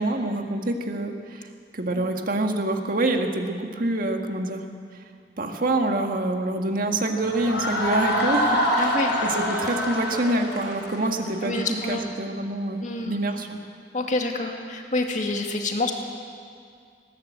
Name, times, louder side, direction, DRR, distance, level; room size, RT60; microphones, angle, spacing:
voice 1, 0.0-4.6 5.4-8.5 8.8-9.0 9.2-13.6, right 2 dB, 55° right, 4 dB, 1.8 m, -26 dB
sound 1, 7.2-11.9, equal, 90° left, 6.1 m, -25 dB
voice 2, 8.8-9.2 11.4-12.1 12.8-13.2 13.9-15.9, left 2 dB, 45° left, 2 dB, 2.1 m, -27 dB
20.0 x 16.5 x 7.9 m, 2.2 s
head